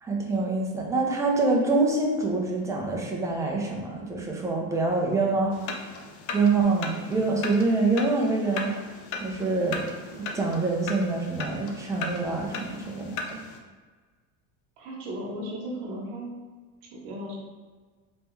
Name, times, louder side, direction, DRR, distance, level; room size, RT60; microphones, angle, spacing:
voice 1, 0.0-6.0 6.3-9.8 10.1-13.4, right 3 dB, 10° right, -1 dB, 0.5 m, -26 dB
sound 1, 5.5-13.6, left 4 dB, 55° left, 0.5 m, -37 dB
voice 2, 14.8-16.3 16.9-17.3, equal, 80° right, -4 dB, 1.0 m, -35 dB
3.3 x 3.2 x 3.0 m, 1.4 s
cardioid pair, 145°, 35 cm